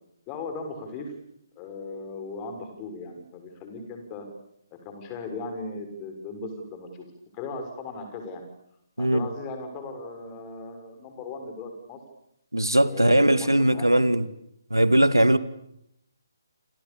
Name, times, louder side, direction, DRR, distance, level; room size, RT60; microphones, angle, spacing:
voice 1, 0.3-1.1 1.6-4.3 4.8-7.0 7.3-8.4 9.0-12.0 12.8-13.9, left 3 dB, 20° left, 6.2 m, -37 dB
voice 2, 12.5-14.3 14.7-15.4, right 1 dB, 85° right, 2.0 m, -20 dB
29.0 x 28.0 x 7.1 m
figure-of-eight pair, 140°, 2 cm